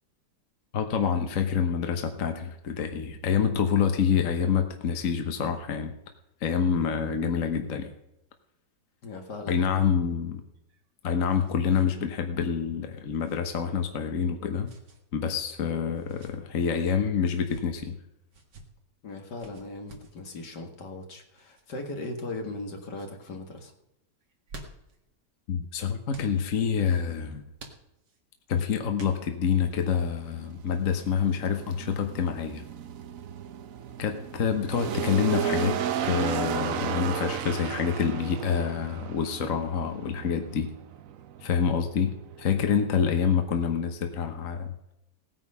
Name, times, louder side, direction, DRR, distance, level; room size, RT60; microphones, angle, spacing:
voice 1, 0.7-5.9 6.4-7.9 9.5-10.4 11.0-14.7 15.1-18.0 25.5-27.4 28.5-32.6 34.0-35.8 36.0-40.7 41.4-44.7, left 7 dB, 55° left, 6 dB, 1.4 m, -27 dB
voice 2, 9.0-9.8 19.0-23.7, left 2 dB, 75° left, 4 dB, 2.5 m, -38 dB
sound 1, 10.5-11.9 12.2-12.3 13.2-13.5 14.6-15.0 15.9-16.4 17.3-17.7 18.3-18.7 19.4-20.2 21.3-21.6 22.3-22.7 22.9-23.1 24.2-25.0 26.1-26.4 27.6-28.2 29.0-29.5, right 2 dB, 80° right, 2.5 m, -49 dB
sound 2, 29.4-43.9, right 9 dB, 60° right, 1.1 m, -34 dB
17.5 x 9.5 x 5.5 m, 0.86 s
omnidirectional pair, 1.8 m